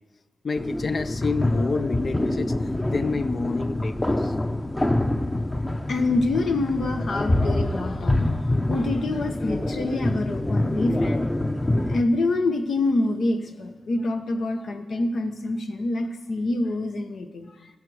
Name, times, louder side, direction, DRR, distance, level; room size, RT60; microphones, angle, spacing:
voice 1, 0.4-2.6 2.9-4.3, left 4 dB, 55° left, 12 dB, 0.5 m, -28 dB
sound 1, 0.6-12.0, left 1 dB, 25° left, 0.9 m, -26 dB
voice 2, 5.9-11.3 11.9-17.8, left 2 dB, 70° left, 6 dB, 1.1 m, -26 dB
15.5 x 6.6 x 4.9 m, 1.3 s
cardioid pair, 45°, 0 cm